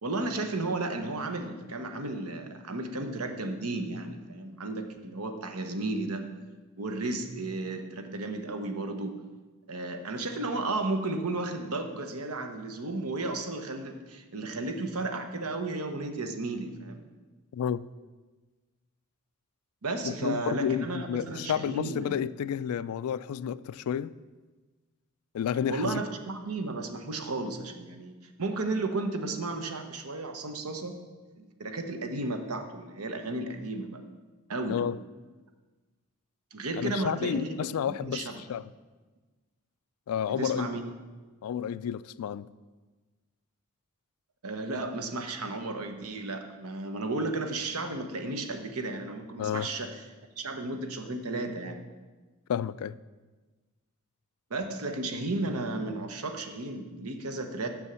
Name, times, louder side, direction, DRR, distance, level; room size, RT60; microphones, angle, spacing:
voice 1, 0.0-6.3 6.8-9.1 9.7-17.0 19.8-22.2 25.7-28.1 28.4-31.0 31.4-34.0 34.5-34.8 36.5-37.5 38.0-38.4 40.3-40.8 44.4-50.0 50.4-51.8 54.5-57.7, right 2 dB, 85° right, 1.0 m, -33 dB
voice 2, 17.5-17.9 20.0-24.2 25.3-26.0 34.7-35.0 36.8-38.7 40.1-40.7 41.4-42.5 49.4-49.7 52.5-52.9, left 8 dB, 80° left, 0.3 m, -31 dB
7.0 x 6.3 x 6.8 m
head